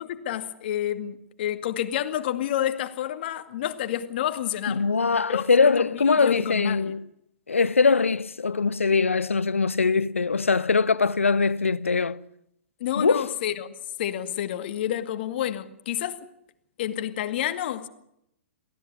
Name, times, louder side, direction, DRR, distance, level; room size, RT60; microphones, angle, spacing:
voice 1, 0.0-4.8 5.3-5.9 6.2-6.9 12.8-13.7 14.0-16.3 16.8-17.9, left 11 dB, 50° left, 2.2 m, -29 dB
voice 2, 4.7-7.0 7.5-12.2 13.0-13.3, left 4 dB, 85° left, 0.8 m, -22 dB
23.5 x 17.0 x 9.8 m
figure-of-eight pair, 115°, 7 cm